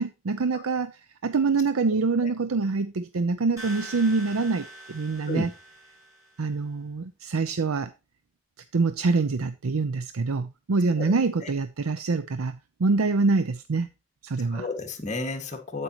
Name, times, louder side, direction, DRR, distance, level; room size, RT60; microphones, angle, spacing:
voice 1, 0.0-5.5 6.4-7.9 8.7-13.9 14.2-14.7, right 4 dB, 85° right, 0.6 m, -25 dB
sound 1, 3.6-6.5, right 1 dB, 15° right, 5.8 m, -43 dB
voice 2, 14.5-15.8, left 2 dB, 35° left, 1.8 m, -32 dB
9.0 x 8.5 x 2.9 m
head